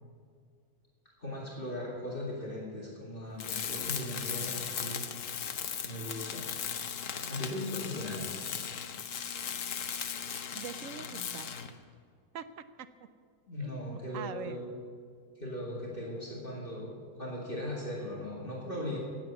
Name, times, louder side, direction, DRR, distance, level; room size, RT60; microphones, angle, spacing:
voice 1, 1.2-5.0 5.8-6.4 7.2-8.3 13.5-14.8 15.4-19.0, left 1 dB, 35° left, -4 dB, 2.4 m, -38 dB
Tools, 3.4-11.8, left 7 dB, 65° left, 1.2 m, -37 dB
voice 2, 10.5-11.5 12.3-12.9 13.6-14.6, right 8 dB, 65° right, 12 dB, 1.0 m, -44 dB
17.0 x 7.4 x 8.2 m, 2.1 s
omnidirectional pair, 1.5 m